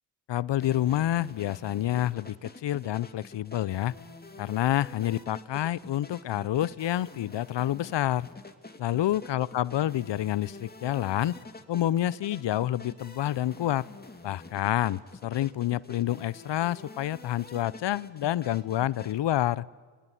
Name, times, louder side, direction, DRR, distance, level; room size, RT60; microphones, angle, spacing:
voice 1, 0.3-3.9 4.4-8.3 8.8-11.4 11.7-13.9 14.2-19.6, left 13 dB, 60° left, 21 dB, 0.8 m, -28 dB
sound 1, 0.6-19.2, left 2 dB, 20° left, 2.5 m, -47 dB
27.5 x 19.5 x 9.9 m, 1.5 s
cardioid pair, 60°, 48 cm